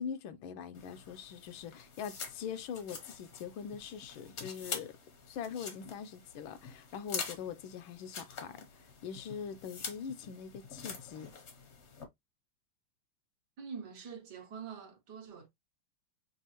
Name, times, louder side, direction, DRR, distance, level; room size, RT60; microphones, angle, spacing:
voice 1, 0.0-4.9 5.3-11.3, left 7 dB, 80° left, 1.3 m, -42 dB
sound 1, 0.7-12.0, left 5 dB, 50° left, 0.8 m, -46 dB
voice 2, 13.6-15.5, right 6 dB, 60° right, 1.3 m, -45 dB
5.5 x 2.4 x 2.9 m
omnidirectional pair, 2.2 m